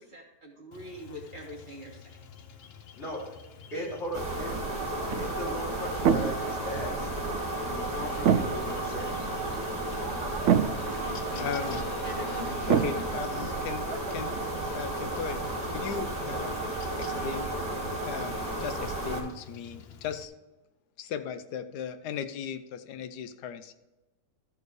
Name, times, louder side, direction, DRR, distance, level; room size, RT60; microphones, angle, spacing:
voice 1, 0.0-2.2 3.7-3.9 10.9-11.5 12.0-12.9, equal, 30° right, -2 dB, 1.4 m, -44 dB
Buzz, 0.7-20.2, left 6 dB, 60° left, 0.6 m, -46 dB
voice 2, 2.9-3.3 3.7-4.5 5.2-7.0 7.5-9.3, left 1 dB, 40° left, -6 dB, 4.1 m, -38 dB
sound 1, 4.1-19.2, right 2 dB, 5° right, 2.1 m, -33 dB
sound 2, 4.4-14.5, right 8 dB, 85° right, 0.6 m, -31 dB
voice 3, 11.4-11.8 12.7-14.3 14.7-15.4 15.7-16.7 17.0-17.5 18.1-20.3 21.0-23.7, left 7 dB, 75° left, 10 dB, 1.2 m, -37 dB
13.5 x 4.7 x 4.8 m, 1.1 s
omnidirectional pair, 1.8 m